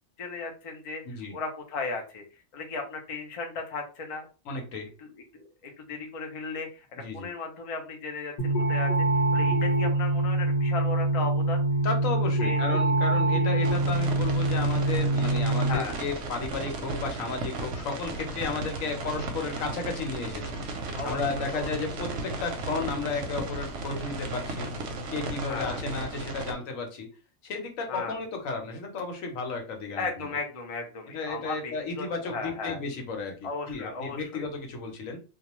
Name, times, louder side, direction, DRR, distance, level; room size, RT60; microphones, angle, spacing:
voice 1, 0.2-1.0 1.3-2.2 2.5-4.3 5.0-9.1 9.3-11.6 12.4-12.8 15.7-16.0 20.9-21.9 25.5-25.9 27.9-28.2 30.0-32.8 33.4-34.4, left 4 dB, 55° left, 2 dB, 0.4 m, -36 dB
voice 2, 1.0-1.3 4.5-4.9 7.0-7.3 11.8-20.6 21.0-24.7 25.1-27.1 27.4-30.1 31.1-35.2, left 4 dB, 75° left, 3 dB, 1.1 m, -33 dB
sound 1, 8.4-15.8, right 2 dB, 30° left, 0.8 m, -24 dB
sound 2, 13.6-26.5, right 2 dB, 65° right, 0.8 m, -35 dB
2.3 x 2.3 x 2.9 m, 0.34 s
omnidirectional pair, 1.4 m